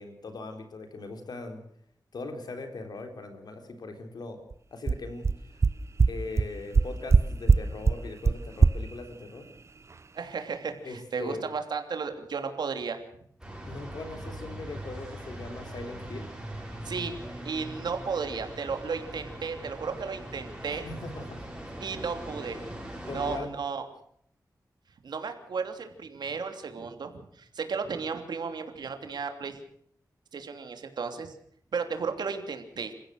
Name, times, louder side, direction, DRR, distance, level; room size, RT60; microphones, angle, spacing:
voice 1, 0.0-1.6 2.1-5.3 6.1-9.5 10.8-11.4 13.7-16.3 20.7-21.6 23.1-23.5, left 3 dB, 70° left, 6 dB, 4.2 m, -40 dB
sound 1, 4.5-4.6 4.9-5.0 5.2-5.3 5.6-5.7 6.0-6.1 6.4-6.5 6.7-7.2 7.5-7.6 7.8-7.9 8.2-8.3 8.6-8.7, right 4 dB, 40° right, 0.7 m, -18 dB
voice 2, 10.1-13.0 16.8-20.9 21.8-22.6 23.0-23.8 25.0-27.1 27.4-29.6 30.3-31.3 31.7-32.9, right 5 dB, 85° right, 6 dB, 3.0 m, -34 dB
sound 2, 13.4-23.4, right 1 dB, 10° right, 7.7 m, -41 dB
28.5 x 15.5 x 6.6 m, 0.67 s
wide cardioid pair, 115°, 7 cm